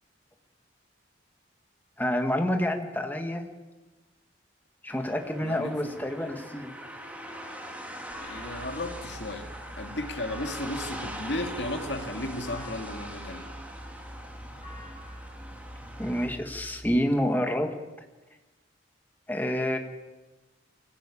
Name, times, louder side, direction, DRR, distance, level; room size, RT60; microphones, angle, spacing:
voice 1, 2.0-3.5 4.8-6.7 16.0-17.7 19.3-19.8, equal, 10° left, 4 dB, 1.8 m, -28 dB
sound 1, 4.9-16.3, equal, 10° right, 2.7 m, -42 dB
voice 2, 5.4-5.9 8.2-13.5, left 1 dB, 60° left, 4 dB, 2.5 m, -35 dB
sound 2, 8.1-16.8, equal, 25° left, 7.1 m, -45 dB
23.5 x 16.0 x 8.6 m, 1.2 s
head